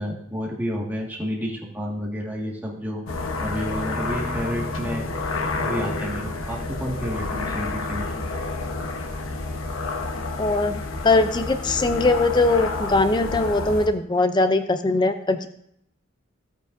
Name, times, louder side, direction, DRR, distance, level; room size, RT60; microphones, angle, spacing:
voice 1, 0.0-3.1 3.4-5.1 5.6-8.1, equal, 10° right, -3 dB, 1.7 m, -30 dB
sound 1, 3.1-13.9, left 3 dB, 90° left, 1.0 m, -29 dB
voice 2, 10.4-15.5, left 2 dB, 20° left, 9 dB, 0.5 m, -21 dB
15.0 x 8.5 x 2.6 m, 0.72 s
head